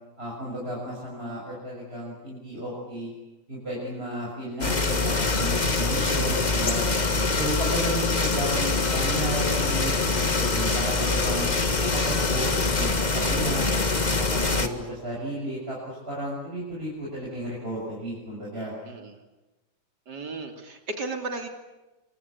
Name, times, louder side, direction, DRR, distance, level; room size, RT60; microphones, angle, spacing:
voice 1, 0.2-3.1 3.5-6.8 7.4-11.5 11.8-13.7 14.1-18.7, right 1 dB, 35° right, -5 dB, 7.3 m, -33 dB
sound 1, 4.6-14.7, left 3 dB, 25° left, 1.7 m, -24 dB
sound 2, 5.2-13.0, left 7 dB, 65° left, 1.7 m, -36 dB
voice 2, 6.9-7.2 18.8-19.2 20.1-21.5, right 3 dB, 70° right, 5 dB, 3.7 m, -36 dB
27.0 x 25.0 x 8.6 m, 1.1 s
omnidirectional pair, 1.8 m